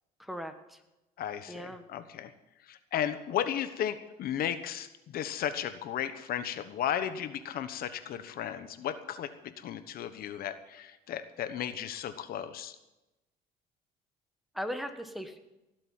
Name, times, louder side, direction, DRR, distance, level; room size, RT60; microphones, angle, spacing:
voice 1, 0.2-0.8 1.5-1.8 14.5-15.4, equal, ahead, 7 dB, 1.4 m, -38 dB
voice 2, 1.2-2.3 2.7-4.9 5.1-12.7, left 10 dB, 65° left, 11 dB, 1.2 m, -34 dB
17.5 x 7.8 x 9.4 m, 0.99 s
cardioid pair, 110°, 16 cm